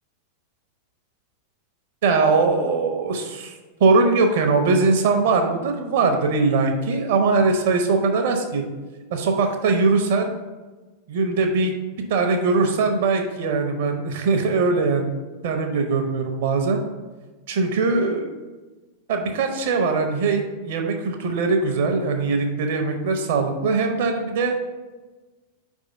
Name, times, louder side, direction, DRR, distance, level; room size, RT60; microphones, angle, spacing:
voice 1, 2.0-3.5 3.8-8.6 9.1-10.3 11.1-11.7 12.1-15.2 15.4-16.8 17.5-18.3 19.1-24.6, right 4 dB, 55° right, 5 dB, 0.9 m, -21 dB
5.0 x 3.6 x 5.3 m, 1.3 s
figure-of-eight pair, 90°, 0 cm